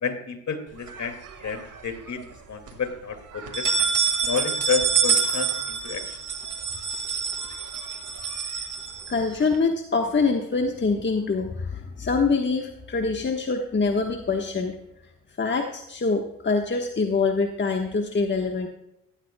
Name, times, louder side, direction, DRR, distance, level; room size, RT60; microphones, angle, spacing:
voice 1, 0.0-3.7 4.2-6.2, left 6 dB, 50° left, 7 dB, 2.2 m, -30 dB
sound 1, 0.9-1.8 2.2-2.3 2.7-2.8 3.3-9.6, right 6 dB, 60° right, 2.0 m, -27 dB
voice 2, 9.1-14.8 15.4-18.7, left 4 dB, 30° left, 3 dB, 1.3 m, -25 dB
15.5 x 11.5 x 2.2 m, 0.81 s
supercardioid pair, 55°, 36 cm